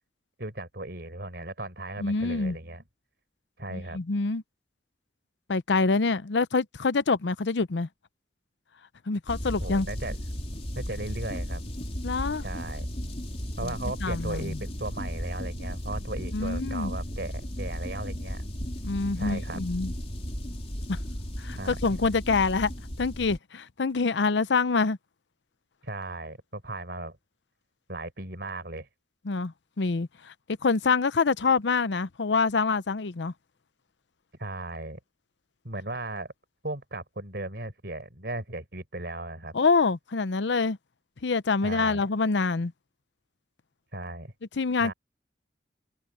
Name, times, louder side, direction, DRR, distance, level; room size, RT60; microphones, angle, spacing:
voice 1, 0.4-2.8 3.6-4.0 9.6-10.2 10.8-11.6 12.4-12.9 13.6-18.4 19.2-19.6 21.5-21.7 25.8-27.2 27.9-28.9 34.4-35.0 35.6-36.3 36.6-39.5 41.6-42.0 43.9-44.3 44.8-44.9, right 2 dB, 65° right, 5.1 m, -36 dB
voice 2, 2.0-2.6 3.7-4.4 5.5-7.9 9.1-9.9 12.0-12.4 13.6-13.7 14.0-14.6 16.3-16.9 18.8-19.9 20.9-21.0 21.4-22.7 23.0-25.0 29.3-30.3 30.6-33.3 39.5-40.8 41.2-42.7 44.6-44.9, left 4 dB, 85° left, 0.7 m, -26 dB
sound 1, 9.3-23.4, equal, 35° left, 3.9 m, -35 dB
head